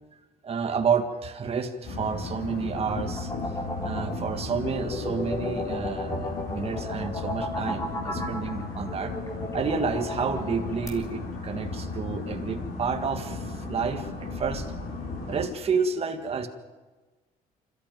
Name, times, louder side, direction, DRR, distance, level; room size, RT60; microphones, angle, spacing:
voice 1, 0.4-3.3 3.8-9.1 9.5-14.7 15.3-16.5, right 5 dB, 35° right, 5 dB, 1.7 m, -30 dB
sound 1, 1.8-15.5, left 3 dB, 60° left, 6.6 m, -35 dB
sound 2, 2.4-10.9, left 2 dB, 20° left, 3.7 m, -35 dB
26.5 x 13.5 x 9.3 m, 1.3 s
cardioid pair, 110°, 17 cm